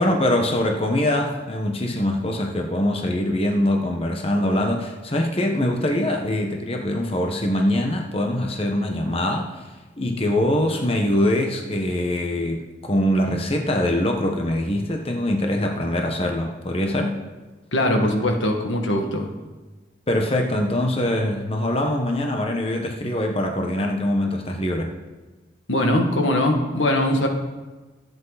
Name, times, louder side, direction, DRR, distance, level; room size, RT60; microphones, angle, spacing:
voice 1, 0.0-9.6 10.0-17.2 20.1-24.9, left 1 dB, 30° left, 2 dB, 1.3 m, -23 dB
voice 2, 17.7-19.3 25.7-27.3, left 1 dB, 90° left, 3 dB, 2.0 m, -21 dB
24.0 x 8.3 x 4.2 m, 1.2 s
head